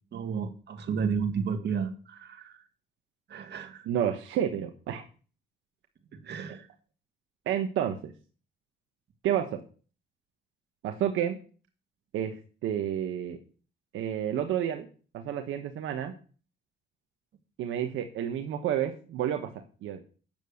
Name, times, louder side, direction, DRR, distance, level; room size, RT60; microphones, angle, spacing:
voice 1, 0.1-2.6 3.3-3.9 6.1-6.7, right 6 dB, 60° right, 6 dB, 2.1 m, -32 dB
voice 2, 3.9-5.0 7.5-8.1 9.2-9.6 10.8-11.4 12.1-12.4 12.6-13.4 13.9-14.9 15.1-16.1 17.6-20.0, right 10 dB, 85° right, 5 dB, 1.3 m, -30 dB
9.1 x 6.8 x 6.5 m, 0.37 s
cardioid pair, 90°, 20 cm